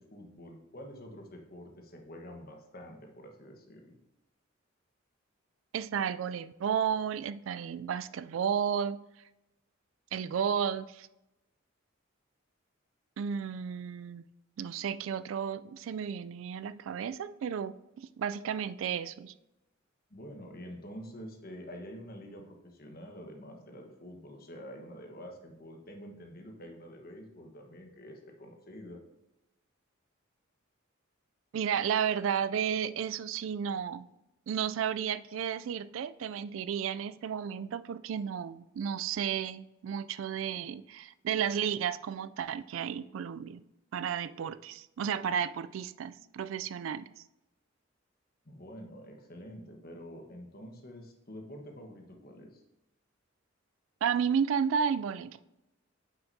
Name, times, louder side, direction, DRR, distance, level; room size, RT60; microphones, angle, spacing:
voice 1, 0.0-3.9 20.1-29.0 48.4-52.6, equal, 50° left, 1.2 m, -47 dB
voice 2, 5.7-9.1 10.1-11.1 13.2-14.2 14.6-19.3 31.5-34.1 34.5-43.6 43.9-47.1 54.0-55.4, right 7 dB, 70° right, 0.3 m, -33 dB
8.8 x 5.8 x 2.7 m
head